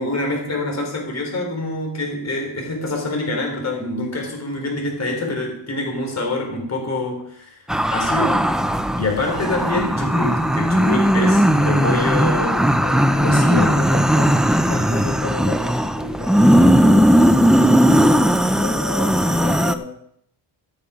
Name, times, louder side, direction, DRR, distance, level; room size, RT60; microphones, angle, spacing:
voice 1, 0.0-7.6 7.9-8.5 9.0-12.7 13.2-13.8, left 2 dB, 35° left, 1 dB, 4.1 m, -25 dB
sound 1, 7.7-19.8, equal, ahead, 0.4 m, -17 dB
voice 2, 12.2-14.3 14.6-20.0, left 4 dB, 50° left, -4 dB, 2.5 m, -33 dB
16.0 x 6.8 x 5.1 m, 0.68 s
wide cardioid pair, 145°, 45 cm